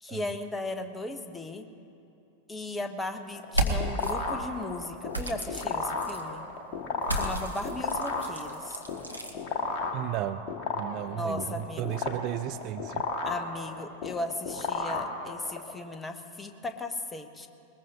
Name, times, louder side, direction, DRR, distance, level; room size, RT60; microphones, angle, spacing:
voice 1, 0.0-1.7 2.5-6.4 7.1-8.8 11.1-12.0 13.2-17.5, left 2 dB, 10° left, 8 dB, 0.9 m, -36 dB
sound 1, 3.3-15.7, left 3 dB, 35° left, 1.8 m, -33 dB
sound 2, 3.4-4.1 5.1-6.2 7.0-9.3, right 1 dB, 90° right, 1.2 m, -32 dB
voice 2, 9.9-10.5 10.7-13.1, right 13 dB, 40° right, 11 dB, 0.4 m, -34 dB
21.0 x 20.5 x 2.8 m, 2.7 s
figure-of-eight pair, 90°, 0 cm